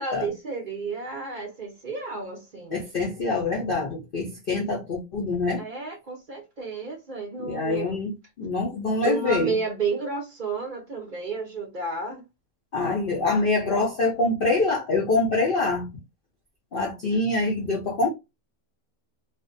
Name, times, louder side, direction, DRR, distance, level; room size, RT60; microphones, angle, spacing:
voice 1, 0.0-2.8 5.6-8.0 9.0-12.2, right 4 dB, 55° right, 0.5 m, -31 dB
voice 2, 2.7-5.6 7.4-8.1 8.4-9.5 12.7-15.9 16.7-18.1, left 3 dB, 60° left, 0.5 m, -25 dB
2.4 x 2.1 x 2.5 m
omnidirectional pair, 1.6 m